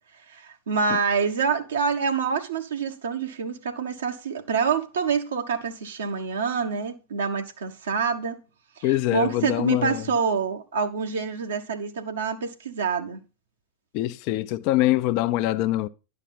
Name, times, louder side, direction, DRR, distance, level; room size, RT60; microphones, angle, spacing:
voice 1, 0.3-8.4 8.8-13.2, right 5 dB, 65° right, 1.1 m, -27 dB
voice 2, 8.8-10.0 13.9-15.9, left 15 dB, 45° left, 0.6 m, -24 dB
11.0 x 5.9 x 5.5 m
figure-of-eight pair, 90°, 0 cm